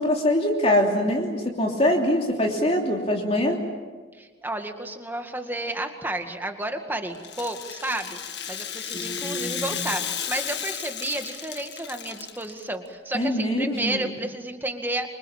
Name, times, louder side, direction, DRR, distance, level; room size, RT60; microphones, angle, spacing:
voice 1, 0.0-3.6 8.9-9.7 13.1-14.1, left 1 dB, 30° left, 1 dB, 3.1 m, -23 dB
voice 2, 4.1-15.1, right 1 dB, 10° right, 5 dB, 2.0 m, -31 dB
Rattle (instrument), 7.1-12.6, left 9 dB, 55° left, 1.9 m, -34 dB
27.5 x 25.5 x 7.5 m, 1.4 s
head